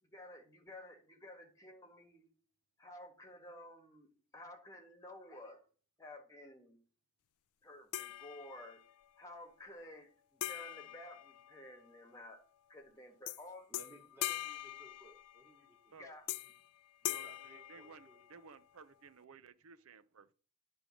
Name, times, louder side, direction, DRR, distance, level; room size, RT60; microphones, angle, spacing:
voice 1, 0.0-2.3 2.8-5.6 6.0-6.8 7.6-8.8 9.2-12.4 12.7-13.7 14.3-14.4 16.0-16.2, left 1 dB, 15° left, 1.5 m, -53 dB
sound 1, 7.9-8.9 10.4-12.0 13.3-13.4 13.7-15.6 16.3-16.7 17.0-18.5, left 14 dB, 80° left, 0.3 m, -42 dB
voice 2, 13.7-16.5 16.9-18.2, right 2 dB, 10° right, 2.3 m, -61 dB
voice 3, 17.0-20.3, right 5 dB, 65° right, 0.5 m, -57 dB
10.0 x 3.4 x 6.2 m
head